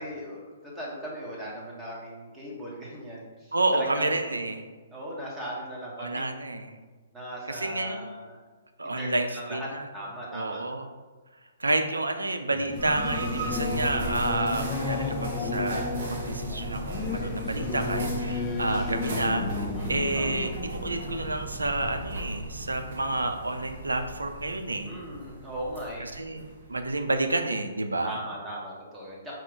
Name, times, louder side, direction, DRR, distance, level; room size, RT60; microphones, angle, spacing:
voice 1, 0.0-4.5 4.9-6.2 7.1-8.4 8.8-9.7 9.9-10.6 17.5-17.9 19.7-20.1 24.8-26.1 28.0-29.4, equal, 15° right, -5 dB, 1.2 m, -38 dB
voice 2, 3.5-4.6 6.0-6.8 7.5-8.2 8.8-9.9 10.3-10.9 11.6-25.0 26.0-28.2, right 2 dB, 85° right, 7 dB, 0.4 m, -30 dB
Singing / Musical instrument, 12.5-22.6, left 4 dB, 25° left, 0.4 m, -34 dB
sound 1, 12.7-27.3, right 1 dB, 55° right, 0.8 m, -37 dB
4.4 x 2.4 x 3.8 m, 1.3 s
figure-of-eight pair, 130°, 0 cm